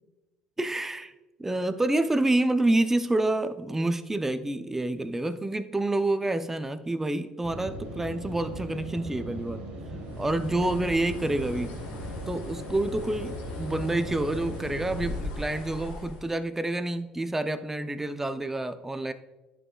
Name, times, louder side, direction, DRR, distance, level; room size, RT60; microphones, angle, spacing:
voice 1, 0.6-1.1 1.4-9.6 10.2-11.8 12.3-19.1, right 2 dB, 15° right, 11 dB, 0.6 m, -28 dB
sound 1, 7.4-15.2, right 1 dB, 55° right, 1.5 m, -39 dB
Bird, 10.0-16.3, left 2 dB, 75° left, 1.4 m, -40 dB
11.0 x 4.9 x 2.3 m, 1.1 s
hypercardioid pair, 65°, 3 cm